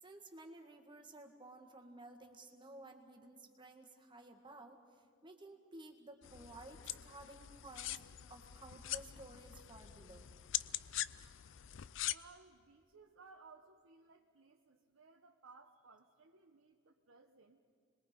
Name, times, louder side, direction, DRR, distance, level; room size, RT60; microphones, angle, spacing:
voice 1, 0.0-8.0 8.3-10.3, right 2 dB, 25° right, 3 dB, 1.8 m, -55 dB
sound 1, 6.2-12.1, left 13 dB, 65° left, 0.5 m, -43 dB
voice 2, 12.0-17.6, right 4 dB, 80° right, 2 dB, 1.0 m, -61 dB
29.5 x 21.0 x 5.2 m, 2.2 s
head